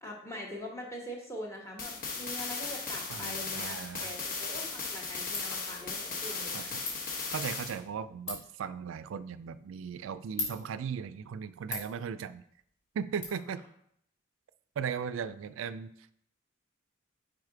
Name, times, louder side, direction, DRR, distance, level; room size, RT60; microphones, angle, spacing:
voice 1, 0.0-6.7, equal, 15° left, -1 dB, 1.1 m, -43 dB
sound 1, 1.8-7.8, left 4 dB, 45° left, 1.0 m, -37 dB
voice 2, 3.1-4.2 6.5-6.8 7.3-12.4 12.9-13.6 14.8-15.9, right 7 dB, 70° right, 14 dB, 0.3 m, -37 dB
Ratchet pawl, 4.2-13.2, left 3 dB, 90° left, 2.0 m, -45 dB
4.9 x 4.8 x 4.7 m, 0.69 s
head